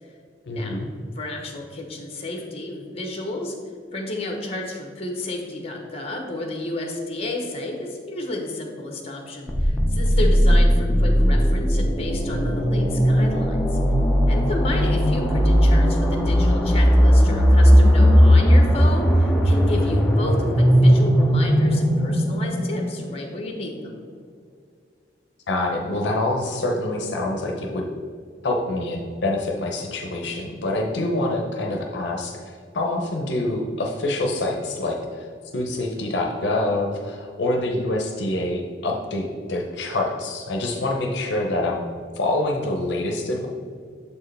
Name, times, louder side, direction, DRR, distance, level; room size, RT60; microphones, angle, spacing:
voice 1, 0.5-0.9 25.5-27.9 28.4-32.4 32.7-41.8 42.1-43.5, left 2 dB, 70° left, 1 dB, 0.6 m, -26 dB
voice 2, 1.2-3.5 3.9-13.6 14.3-24.0, left 2 dB, 35° left, 2 dB, 0.9 m, -31 dB
sound 1, 9.5-23.2, equal, 5° left, 0.5 m, -17 dB
6.9 x 4.5 x 3.3 m, 2.1 s
head